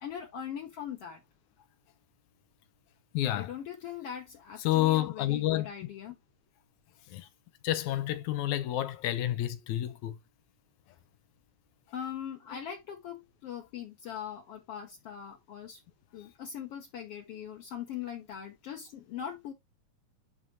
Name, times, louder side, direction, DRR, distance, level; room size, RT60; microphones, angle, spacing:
voice 1, 0.0-1.2 3.4-6.2 11.9-15.8 16.1-19.5, left 9 dB, 65° left, 1.8 m, -41 dB
voice 2, 3.1-3.5 4.6-5.7 7.1-7.3 7.6-10.2, left 14 dB, 85° left, 2.2 m, -29 dB
11.0 x 4.0 x 3.0 m
omnidirectional pair, 3.3 m